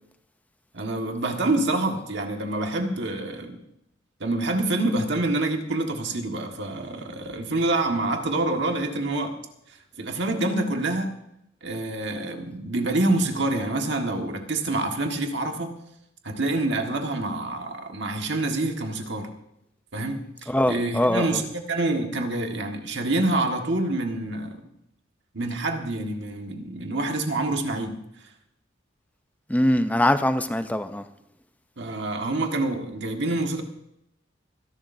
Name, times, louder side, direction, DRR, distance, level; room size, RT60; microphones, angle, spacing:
voice 1, 0.7-3.6 4.2-9.4 10.0-11.1 11.6-15.7 16.2-19.3 19.9-24.6 25.3-28.0 31.8-33.6, right 2 dB, 60° right, 1.7 m, -27 dB
voice 2, 20.5-21.4 29.5-31.1, left 1 dB, 10° left, 0.6 m, -22 dB
25.0 x 11.5 x 2.7 m
head